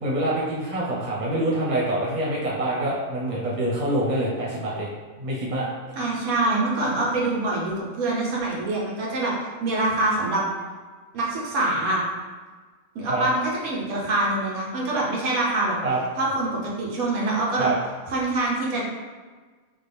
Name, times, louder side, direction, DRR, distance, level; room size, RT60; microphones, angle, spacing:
voice 1, 0.0-4.9 5.2-5.7 13.1-13.2 15.8-16.0 17.6-17.7, right 1 dB, 35° right, -6 dB, 0.9 m, -25 dB
voice 2, 6.0-9.3 9.6-10.4 11.1-12.0 12.9-15.7 16.2-17.7 18.1-18.8, right 2 dB, 75° right, -4 dB, 1.2 m, -25 dB
3.6 x 2.4 x 3.4 m, 1.4 s
omnidirectional pair, 1.5 m